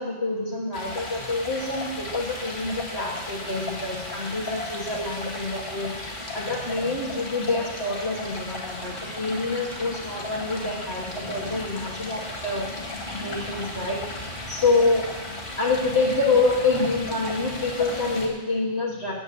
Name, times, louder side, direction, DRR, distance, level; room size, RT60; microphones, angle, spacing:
voice 1, 0.0-5.9 6.3-12.7 13.2-14.0 14.5-15.0 15.3-19.1, left 3 dB, 70° left, -4 dB, 2.6 m, -26 dB
Stream, 0.7-18.3, left 2 dB, 50° left, 2.2 m, -35 dB
10.5 x 7.6 x 8.2 m, 1.2 s
omnidirectional pair, 1.1 m